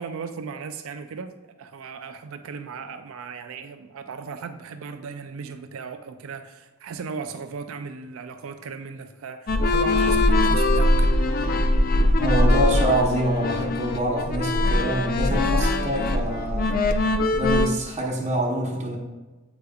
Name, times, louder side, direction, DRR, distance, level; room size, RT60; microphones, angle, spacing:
voice 1, 0.0-1.3 1.6-11.1, right 5 dB, 70° right, 8 dB, 0.4 m, -36 dB
sound 1, 9.5-17.7, left 1 dB, 40° left, 0.4 m, -21 dB
voice 2, 12.2-16.7 17.3-19.0, right 1 dB, 30° right, -2 dB, 0.9 m, -26 dB
8.0 x 5.1 x 2.3 m, 1.2 s
head